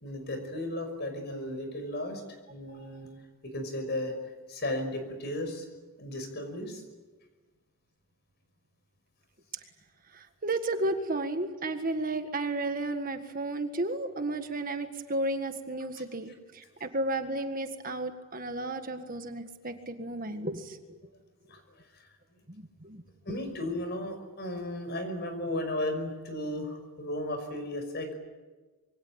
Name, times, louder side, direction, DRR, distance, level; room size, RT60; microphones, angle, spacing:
voice 1, 0.0-2.2 2.5-3.1 3.4-4.1 4.5-5.7 6.0-6.8 21.5-21.6 23.3-28.1, left 1 dB, 50° left, 7 dB, 5.6 m, -35 dB
voice 2, 10.1-20.8 22.5-23.0, right 2 dB, 40° right, 7 dB, 1.7 m, -33 dB
26.5 x 23.5 x 8.8 m, 1.3 s
head